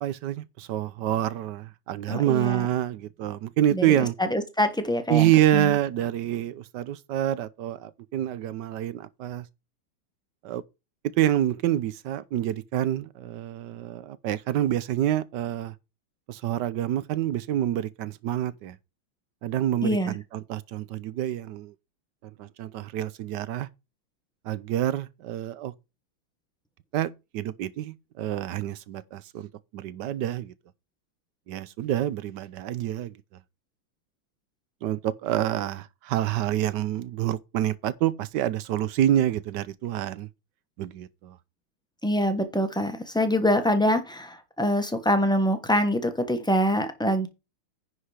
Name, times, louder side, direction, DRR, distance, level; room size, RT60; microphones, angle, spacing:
voice 1, 0.0-4.1 5.1-9.5 10.4-10.6 11.2-15.7 16.3-18.8 19.4-21.7 22.4-23.7 24.4-25.7 26.9-30.5 31.5-33.2 34.8-40.3 40.8-41.4, right 12 dB, 70° right, 1.1 m, -27 dB
voice 2, 2.1-2.7 3.7-5.7 19.8-20.1 42.0-47.3, equal, 5° left, 0.7 m, -25 dB
10.0 x 4.8 x 4.9 m
omnidirectional pair, 2.3 m